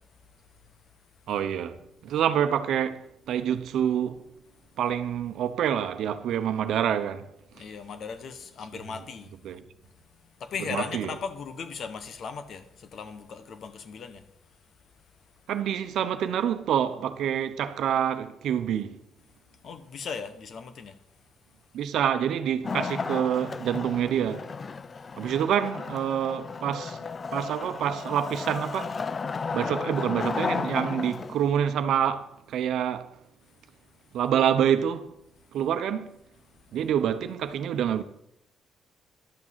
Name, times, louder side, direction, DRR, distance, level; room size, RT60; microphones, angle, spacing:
voice 1, 1.3-4.2 4.8-7.3 9.4-9.6 10.7-11.1 15.5-18.9 21.7-24.5 25.2-27.0 27.3-28.9 29.5-33.1 34.1-35.1 35.5-36.1 36.7-38.0, right 9 dB, 75° right, 0.9 m, -27 dB
voice 2, 7.5-9.3 10.4-14.2 19.6-20.9, left 6 dB, 60° left, 1.3 m, -37 dB
Wood, 22.6-31.5, left 5 dB, 35° left, 0.5 m, -34 dB
12.0 x 6.3 x 7.5 m
cardioid pair, 90°, 0 cm